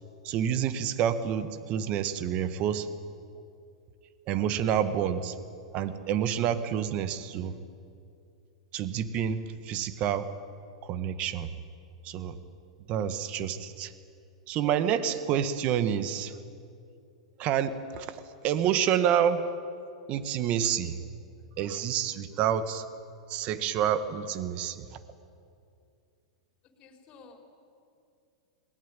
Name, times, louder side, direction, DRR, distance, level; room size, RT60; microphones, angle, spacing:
voice 1, 0.2-2.9 4.3-5.4 5.7-7.6 8.7-10.3 10.8-11.5 12.0-12.4 12.9-13.9 14.5-16.4 17.4-19.5 20.1-21.0 21.6-22.9 23.3-25.0, right 9 dB, 40° right, 11 dB, 1.7 m, -28 dB
voice 2, 26.8-27.4, left 4 dB, 35° left, 3 dB, 4.4 m, -52 dB
21.5 x 19.5 x 9.3 m, 2.5 s
hypercardioid pair, 105°, 3 cm